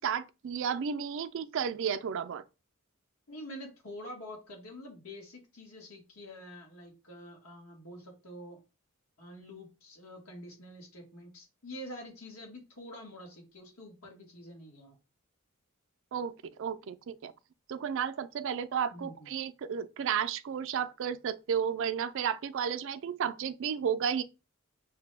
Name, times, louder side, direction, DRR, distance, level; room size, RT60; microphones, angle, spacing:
voice 1, 0.0-2.4 16.1-17.3 17.7-24.2, right 7 dB, 60° right, 0.4 m, -33 dB
voice 2, 3.3-8.6 9.2-14.9 18.9-19.3, equal, 80° left, 1.6 m, -47 dB
5.7 x 2.2 x 3.2 m
head